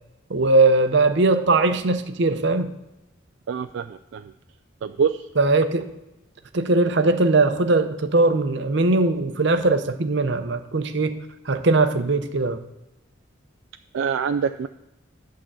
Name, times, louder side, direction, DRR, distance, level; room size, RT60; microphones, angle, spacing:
voice 1, 0.3-2.7 5.4-5.8 6.5-11.2 11.5-12.6, right 2 dB, 60° right, 8 dB, 0.7 m, -20 dB
voice 2, 3.5-4.3 4.8-5.3 13.9-14.7, right 6 dB, 75° right, 9 dB, 0.3 m, -25 dB
11.0 x 3.7 x 7.4 m, 0.91 s
head